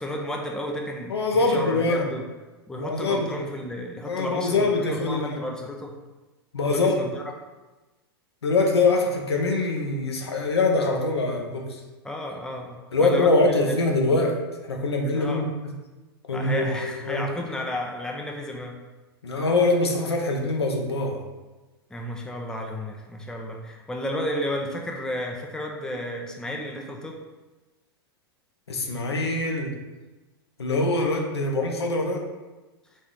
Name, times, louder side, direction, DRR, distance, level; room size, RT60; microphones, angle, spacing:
voice 1, 0.0-2.2 2.7-5.9 6.7-7.3 12.0-13.8 15.1-15.4 16.3-18.8 21.9-27.2, left 1 dB, 5° left, 1 dB, 0.6 m, -32 dB
voice 2, 1.1-2.1 2.7-3.4 4.1-5.4 6.5-7.0 8.4-11.8 12.9-14.4 14.7-15.4 16.3-17.3 19.2-21.2 28.7-29.8 30.6-32.2, left 2 dB, 85° left, 1 dB, 0.9 m, -23 dB
4.3 x 3.0 x 3.7 m, 1.2 s
hypercardioid pair, 100°, 13 cm